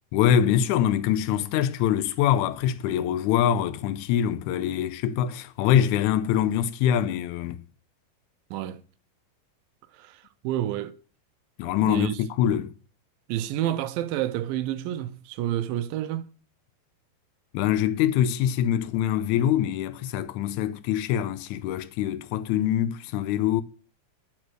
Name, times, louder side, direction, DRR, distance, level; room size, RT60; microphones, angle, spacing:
voice 1, 0.1-7.6 11.6-12.7 17.5-23.6, left 10 dB, 80° left, 1.8 m, -24 dB
voice 2, 8.5-8.8 9.9-10.9 11.8-12.2 13.3-16.3, right 12 dB, 90° right, 2.4 m, -29 dB
11.0 x 4.3 x 6.2 m
omnidirectional pair, 4.0 m